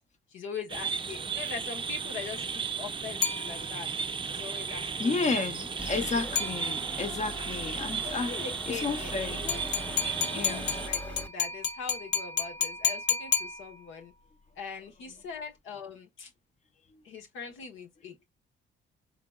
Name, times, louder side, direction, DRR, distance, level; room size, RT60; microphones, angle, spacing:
voice 1, 0.3-3.9 4.3-5.5 8.0-9.6 10.0-14.1 14.6-16.3 17.0-18.3, left 5 dB, 90° left, 1.1 m, -42 dB
sound 1, 0.7-10.9, right 6 dB, 25° right, 0.5 m, -35 dB
sound 2, 3.2-4.0 6.4-7.1 9.5-14.1, left 6 dB, 60° left, 1.0 m, -32 dB
voice 2, 5.0-8.3 8.7-9.5 10.3-10.6 16.9-17.0, left 4 dB, 35° left, 0.8 m, -32 dB
sound 3, 5.8-11.3, left 1 dB, 5° left, 0.7 m, -42 dB
3.8 x 3.5 x 2.2 m
cardioid pair, 90°, 20 cm